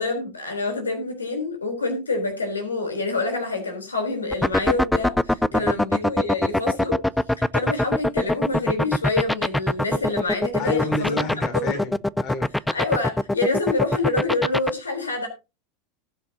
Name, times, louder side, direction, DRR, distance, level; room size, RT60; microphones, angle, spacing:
voice 1, 0.0-7.0 7.4-11.2 11.5-11.8 12.7-15.3, left 3 dB, 85° left, 5 dB, 3.7 m, -27 dB
sound 1, 4.3-14.7, left 1 dB, 5° left, 0.5 m, -21 dB
voice 2, 10.6-12.5, left 3 dB, 45° left, 5 dB, 4.2 m, -30 dB
19.5 x 7.5 x 2.8 m, 0.28 s
figure-of-eight pair, 85°, 0 cm